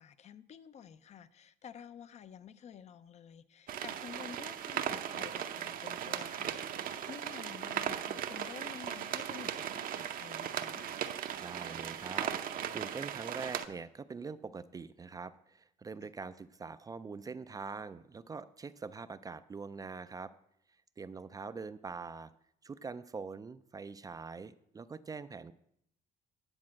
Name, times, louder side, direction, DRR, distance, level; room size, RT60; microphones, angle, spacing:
voice 1, 0.0-10.9 16.0-16.1, left 7 dB, 40° left, 15 dB, 0.5 m, -51 dB
sound 1, 3.7-13.7, right 9 dB, 55° right, 0.7 m, -38 dB
voice 2, 11.4-20.3 21.0-22.3 22.6-25.5, right 4 dB, 20° right, 13 dB, 0.4 m, -44 dB
9.7 x 4.3 x 7.4 m, 0.70 s
cardioid pair, 110°, 17 cm